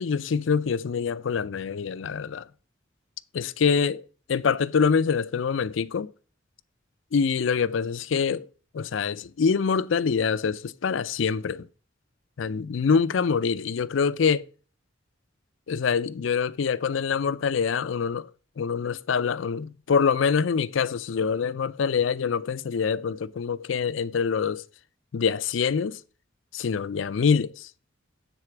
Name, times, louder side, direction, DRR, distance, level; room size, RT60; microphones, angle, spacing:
voice 1, 0.0-2.4 3.3-4.0 4.3-6.1 7.1-8.5 8.7-11.7 12.4-14.4 15.7-18.3 18.6-24.6 25.1-26.0 26.5-27.7, left 6 dB, 75° left, 0.4 m, -25 dB
9.9 x 4.2 x 5.9 m
head